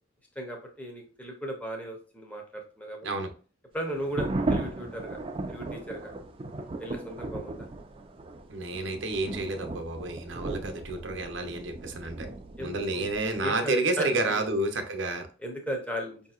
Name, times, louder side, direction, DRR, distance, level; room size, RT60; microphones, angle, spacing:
voice 1, 0.4-3.1 3.7-5.2 5.5-6.1 6.8-7.7 12.6-13.1 13.4-14.5 15.4-16.2, right 1 dB, 10° left, 2 dB, 0.7 m, -36 dB
sound 1, 3.9-13.4, right 2 dB, 30° right, 0.4 m, -36 dB
voice 2, 8.5-12.3 12.6-15.3, right 2 dB, 70° right, 5 dB, 0.7 m, -30 dB
4.9 x 2.7 x 2.4 m, 0.39 s
head